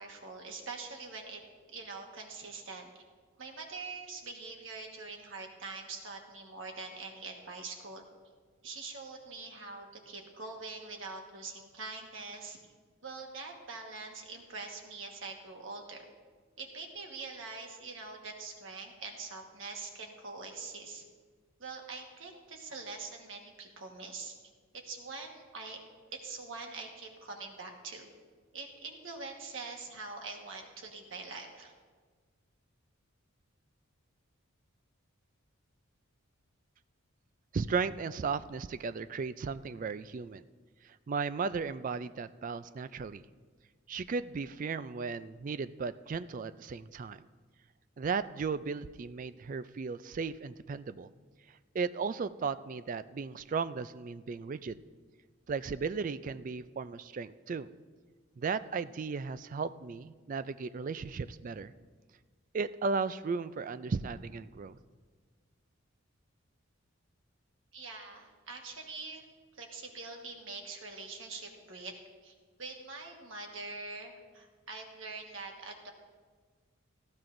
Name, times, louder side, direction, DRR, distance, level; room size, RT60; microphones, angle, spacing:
voice 1, 0.0-1.4 1.7-3.0 3.4-8.0 8.6-12.6 13.0-16.1 16.6-21.0 21.6-24.3 24.9-25.8 26.1-28.1 28.5-31.7 67.7-69.2 69.5-71.9 72.2-75.9, right 3 dB, 65° right, 2 dB, 1.4 m, -44 dB
voice 2, 37.5-40.4 40.8-43.2 43.9-47.3 48.0-51.1 51.5-54.8 55.5-57.7 58.4-61.7 62.5-64.8, right 5 dB, 40° right, 14 dB, 0.3 m, -35 dB
18.5 x 14.0 x 2.6 m, 1.5 s
head